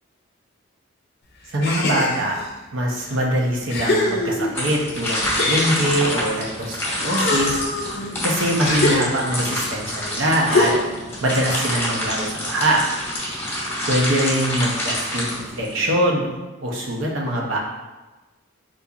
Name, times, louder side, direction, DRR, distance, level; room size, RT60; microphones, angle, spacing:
voice 1, 1.5-2.4 2.7-7.6 8.2-10.7 11.2-12.8 13.9-16.3 16.6-17.6, right 1 dB, 70° right, -2 dB, 0.7 m, -23 dB
sound 1, 1.6-2.5 3.1-3.2 3.7-4.7 5.2-6.6 7.0-9.5 10.5-11.1, left 2 dB, 50° left, 0.5 m, -24 dB
sound 2, 4.5-15.9, left 1 dB, 10° left, 0.7 m, -27 dB
3.8 x 2.8 x 2.4 m, 1.1 s
head